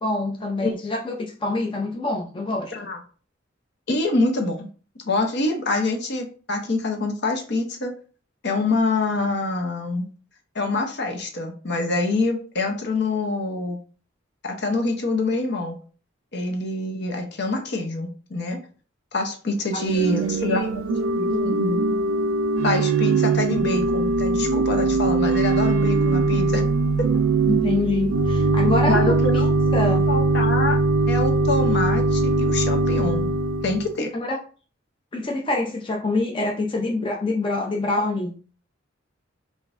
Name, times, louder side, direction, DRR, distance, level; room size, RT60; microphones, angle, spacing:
voice 1, 0.0-2.9 19.7-19.8 20.4-20.7 27.5-30.1 34.1-34.4 35.1-38.3, left 2 dB, 25° left, 0 dB, 0.5 m, -26 dB
voice 2, 3.9-4.7 5.1-7.9 8.4-10.1 10.5-13.8 14.4-15.8 16.3-18.6 19.1-21.8 22.6-26.6 28.9-29.5 30.1-30.8 31.1-33.3 33.6-34.1, left 2 dB, 55° left, 4 dB, 0.8 m, -25 dB
Organ / Church bell, 19.8-33.9, right 3 dB, 80° right, 0.4 m, -21 dB
5.0 x 2.6 x 2.5 m, 0.39 s
head